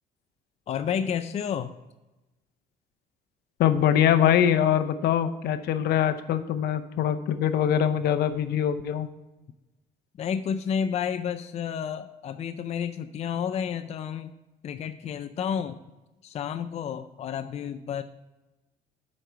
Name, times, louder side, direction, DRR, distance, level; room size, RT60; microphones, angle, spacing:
voice 1, 0.7-1.7 10.2-14.3 14.6-15.8 16.2-18.0, left 8 dB, 40° left, 9 dB, 0.4 m, -30 dB
voice 2, 3.6-9.1, left 9 dB, 70° left, 9 dB, 0.7 m, -23 dB
7.6 x 5.3 x 5.6 m, 1.0 s
cardioid pair, 110°, 17 cm